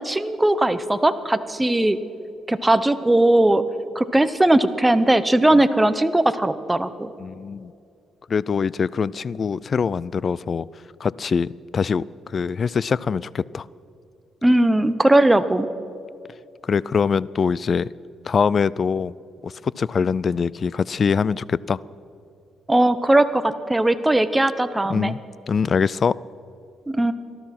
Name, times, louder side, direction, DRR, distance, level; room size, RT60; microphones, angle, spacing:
voice 1, 0.0-2.0 2.5-3.6 3.9-7.1 14.4-15.7 22.7-25.1 26.9-27.1, right 1 dB, 10° right, 12 dB, 0.8 m, -19 dB
voice 2, 7.2-7.7 8.3-10.7 11.0-12.0 12.3-13.7 16.6-17.9 18.3-19.1 19.4-21.8 24.9-25.2 25.5-26.1, left 6 dB, 45° left, 22 dB, 0.3 m, -23 dB
18.5 x 13.0 x 5.9 m, 2.5 s
cardioid pair, 90°, 0 cm